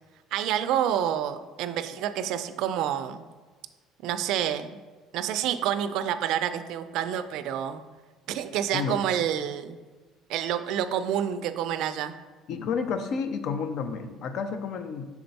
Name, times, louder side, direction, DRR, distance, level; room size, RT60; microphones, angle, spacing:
voice 1, 0.3-3.2 4.0-4.8 5.1-7.8 8.3-9.8 10.3-12.1, right 10 dB, 65° right, 11 dB, 0.4 m, -28 dB
voice 2, 12.5-15.1, left 5 dB, 55° left, 9 dB, 0.6 m, -30 dB
5.9 x 4.3 x 4.1 m, 1.4 s
cardioid pair, 145°, 0 cm